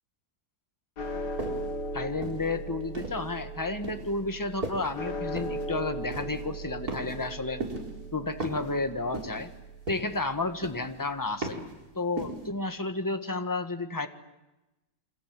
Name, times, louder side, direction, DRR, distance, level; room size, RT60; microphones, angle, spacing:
sound 1, 1.0-11.4, right 1 dB, 85° left, 2.9 m, -38 dB
sound 2, 1.4-1.7 2.2-3.3 3.8-4.1 4.6-5.0 5.4-5.7 6.1-6.5 6.9-7.3 7.6-8.0 8.4-8.7 9.1-9.5 9.9-10.3 10.6-11.0 11.4-11.7 12.2-12.5, right 2 dB, 65° right, 5.2 m, -36 dB
voice 1, 1.9-7.6 8.1-9.5 9.9-11.6 11.9-14.1, left 3 dB, 10° left, 8 dB, 1.5 m, -31 dB
28.0 x 25.5 x 7.7 m, 1.0 s
omnidirectional pair, 1.7 m